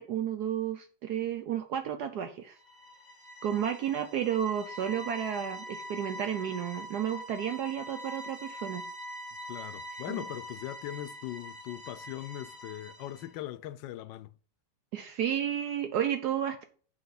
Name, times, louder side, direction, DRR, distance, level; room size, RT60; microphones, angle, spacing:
voice 1, 0.0-2.6 3.4-8.8 10.1-10.2 14.9-16.6, right 9 dB, 70° right, 1.2 m, -32 dB
sound 1, 2.6-13.4, equal, 45° left, 2.1 m, -44 dB
voice 2, 9.5-14.3, left 13 dB, 90° left, 1.3 m, -40 dB
7.8 x 5.3 x 4.0 m
omnidirectional pair, 1.9 m